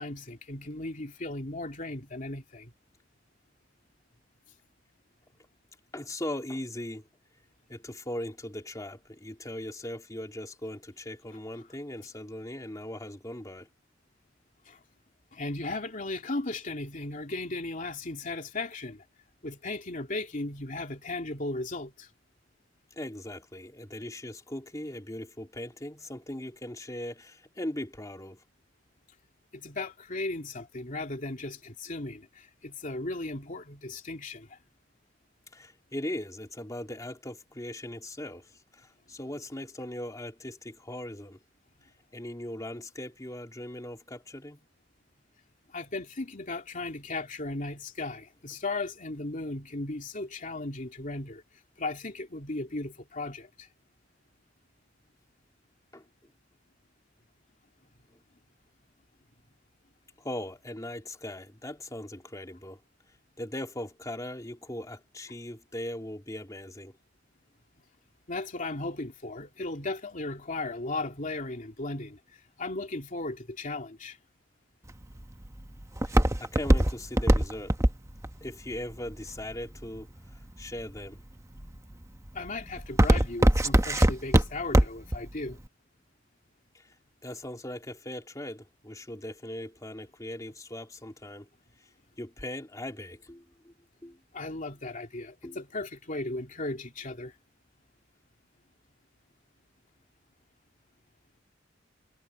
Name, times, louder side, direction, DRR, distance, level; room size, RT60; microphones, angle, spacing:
voice 1, 0.0-2.7 14.6-14.8 15.3-19.0 19.4-22.1 29.5-34.6 45.7-51.4 51.8-53.7 68.3-74.2 82.3-85.6 94.3-97.4, left 2 dB, 45° left, 2.8 m, -36 dB
voice 2, 5.9-7.0 7.7-13.7 22.9-28.4 35.5-41.4 42.1-44.6 55.9-56.0 58.1-58.2 60.2-62.8 63.4-66.9 76.4-77.8 78.4-81.2 86.7-86.9 87.2-91.5 92.2-93.7 94.0-94.2 95.4-95.6, left 1 dB, 20° left, 2.9 m, -39 dB
Walk footsteps, 74.9-80.0 80.6-81.1 81.6-81.9 82.3-85.2 85.5-85.6, right 1 dB, 15° right, 1.1 m, -22 dB
head